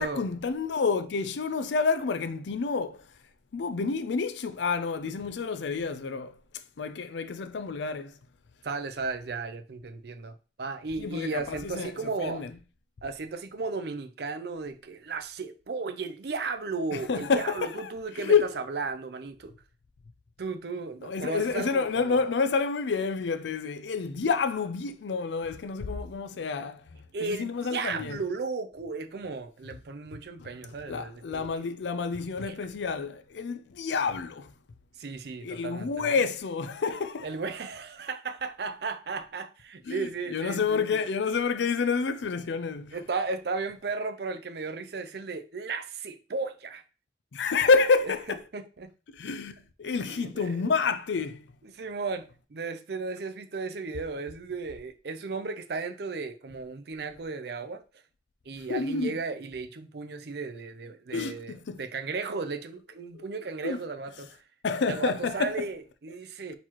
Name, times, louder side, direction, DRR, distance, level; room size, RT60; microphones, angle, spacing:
voice 1, 0.0-3.1 3.5-6.4 6.8-8.1 11.0-11.9 12.2-12.5 16.9-17.9 18.2-18.5 21.0-28.2 30.9-34.5 35.4-37.3 39.9-43.0 47.3-48.4 49.1-51.4 58.7-59.2 61.1-61.8 63.1-63.3 63.6-63.8 64.6-65.7, left 5 dB, 75° left, 0.4 m, -29 dB
voice 2, 8.6-12.4 13.0-19.5 20.4-22.2 27.1-31.5 32.5-32.6 35.0-36.1 37.2-41.0 42.9-46.8 48.5-48.9 49.8-50.7 51.6-57.8 58.5-64.4 64.8-66.5, right 4 dB, 60° right, 0.5 m, -35 dB
4.3 x 4.0 x 3.0 m
head